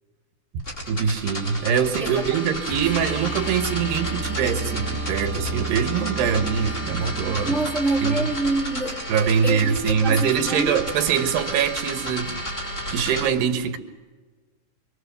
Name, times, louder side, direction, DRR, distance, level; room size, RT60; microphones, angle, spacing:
voice 1, 0.5-7.7 8.0-8.3 9.1-13.8, right 7 dB, 75° right, 3.6 m, -23 dB
sound 1, 0.6-13.3, equal, 15° left, 4.1 m, -32 dB
voice 2, 2.0-2.6 7.4-9.0 9.4-9.7 10.0-10.8, right 2 dB, ahead, 1.4 m, -26 dB
sound 2, 2.7-8.6 11.1-11.2, right 2 dB, 60° left, 3.6 m, -33 dB
27.0 x 24.5 x 6.9 m
omnidirectional pair, 4.8 m